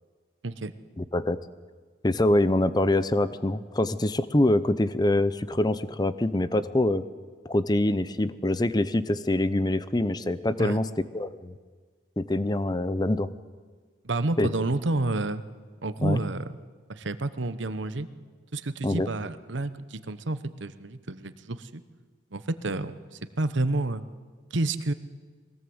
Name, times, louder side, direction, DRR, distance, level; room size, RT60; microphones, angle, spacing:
voice 1, 1.0-1.4 2.0-7.0 7.4-11.5 12.2-13.3 14.4-14.5 16.0-16.2 18.8-19.1, left 1 dB, 20° left, 14 dB, 0.6 m, -25 dB
voice 2, 14.0-15.4 15.8-16.5 16.9-18.1 18.5-21.8 22.3-24.0 24.5-24.9, right 2 dB, 70° right, 12 dB, 1.0 m, -29 dB
22.0 x 17.5 x 7.9 m, 1.6 s
head